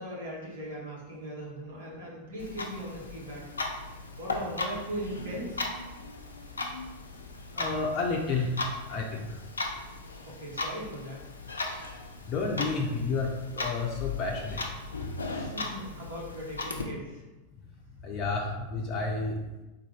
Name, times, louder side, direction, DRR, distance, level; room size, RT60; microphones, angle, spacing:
voice 1, 0.0-3.8 4.2-5.6 10.2-11.2 15.3-17.2, right 1 dB, 60° right, -4 dB, 1.5 m, -39 dB
Clock, 2.4-16.8, left 2 dB, 75° left, 0.5 m, -37 dB
voice 2, 7.5-8.5 8.9-9.4 12.3-14.6 18.0-19.4, left 4 dB, 35° left, -1 dB, 0.6 m, -30 dB
4.1 x 2.6 x 4.5 m, 1.1 s
figure-of-eight pair, 90°, 0 cm